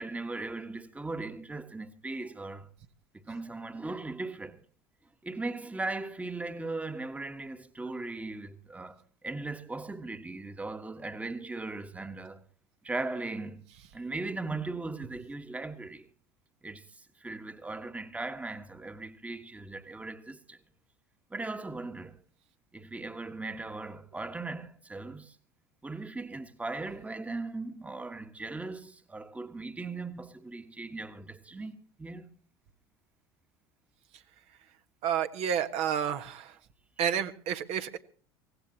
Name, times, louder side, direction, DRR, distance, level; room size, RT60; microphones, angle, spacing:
voice 1, 0.0-2.7 3.1-4.6 5.2-12.4 12.8-13.6 13.9-16.1 16.6-20.6 21.3-22.2 22.7-25.4 25.8-32.3, right 3 dB, 10° right, 1.5 m, -38 dB
voice 2, 35.0-36.6 37.0-38.0, right 9 dB, 55° right, 1.5 m, -30 dB
24.0 x 18.0 x 2.9 m
figure-of-eight pair, 70°, 13 cm